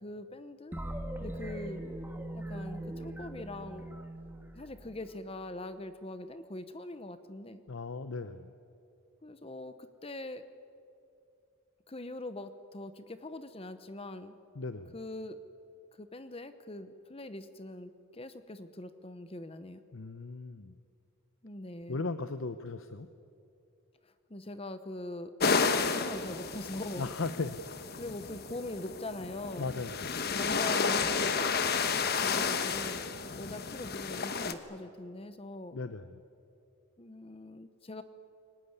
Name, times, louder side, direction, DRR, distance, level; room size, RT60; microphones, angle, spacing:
voice 1, 0.0-0.8 1.2-1.8 2.3-3.9 4.5-7.6 9.2-9.7 10.0-10.4 11.9-14.3 14.9-15.4 16.0-19.8 21.4-22.0 24.0-25.3 25.7-27.1 27.9-29.7 30.3-33.0 33.4-35.8 37.0-38.0, left 1 dB, 25° left, 11 dB, 0.9 m, -42 dB
sound 1, 0.7-5.4, right 1 dB, 10° right, 1.7 m, -41 dB
voice 2, 7.7-8.5 14.6-14.9 19.9-20.7 21.9-23.1 27.0-27.6 29.6-30.0 35.7-36.2, left 3 dB, 65° left, 11 dB, 0.8 m, -37 dB
sound 2, 25.4-34.5, left 5 dB, 50° left, 1.2 m, -31 dB
23.5 x 18.5 x 9.7 m, 2.5 s
head